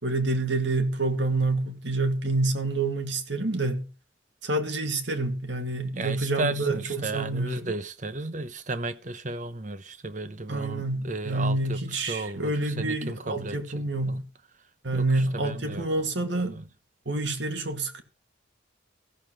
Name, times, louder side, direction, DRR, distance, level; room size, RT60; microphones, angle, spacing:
voice 1, 0.0-3.9 4.4-7.7 10.5-14.2 14.8-16.5 17.1-18.0, right 2 dB, 65° right, 2.1 m, -28 dB
voice 2, 5.9-14.2 14.9-16.1 16.4-16.7, right 2 dB, 40° right, 0.9 m, -34 dB
15.0 x 7.1 x 6.1 m
head